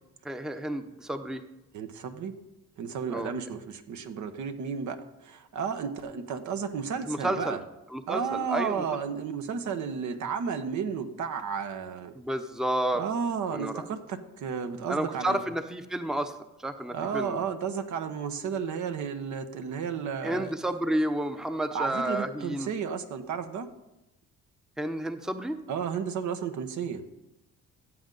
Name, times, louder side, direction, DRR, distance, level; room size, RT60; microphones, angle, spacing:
voice 1, 0.2-1.4 3.1-3.3 7.0-7.6 7.9-8.8 12.1-13.0 13.5-13.9 14.9-17.4 20.2-22.7 24.8-25.6, right 1 dB, ahead, 9 dB, 0.7 m, -31 dB
voice 2, 1.7-2.3 2.8-5.0 5.2-7.6 8.1-12.1 12.9-15.4 16.9-20.5 21.7-23.7 25.7-27.0, right 6 dB, 70° right, 8 dB, 1.1 m, -32 dB
15.0 x 7.7 x 3.9 m, 0.92 s
cardioid pair, 90°, 30 cm